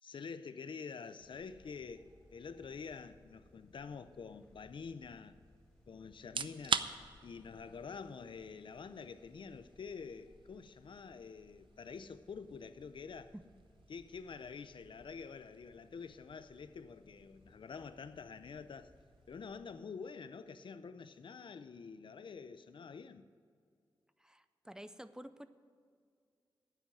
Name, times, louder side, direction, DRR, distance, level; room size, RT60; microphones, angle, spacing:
voice 1, 0.0-5.4 5.9-6.9 7.2-13.3 13.9-18.9 19.3-23.3, left 5 dB, 70° left, 0.5 m, -47 dB
sound 1, 1.2-19.5, left 1 dB, 10° left, 3.1 m, -66 dB
sound 2, 6.2-21.0, right 6 dB, 75° right, 0.5 m, -46 dB
voice 2, 24.2-25.5, equal, 10° right, 0.5 m, -50 dB
9.7 x 7.9 x 9.1 m
wide cardioid pair, 90°, 9 cm